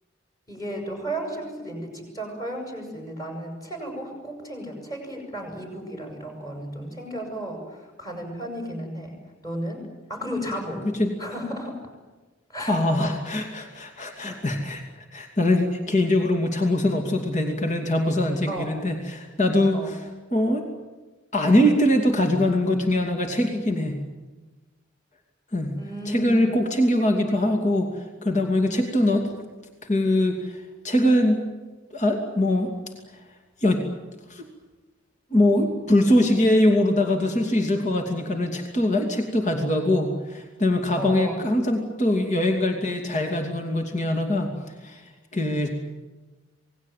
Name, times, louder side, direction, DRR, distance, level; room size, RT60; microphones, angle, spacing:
voice 1, 0.5-9.2 9.4-10.9 11.2-11.8 12.5-12.9 14.0-14.4 18.5-18.7 19.7-19.9 25.8-26.6 40.9-41.4, right 1 dB, 20° left, 3 dB, 7.5 m, -34 dB
voice 2, 12.6-20.0 20.3-20.6 21.3-24.0 25.5-25.7 26.1-29.3 29.8-31.4 31.9-32.7 33.6-33.8 34.3-34.5 35.3-44.5 44.8-45.0 45.3-45.7, left 1 dB, 35° left, 4 dB, 2.7 m, -22 dB
27.5 x 19.5 x 9.3 m, 1.2 s
head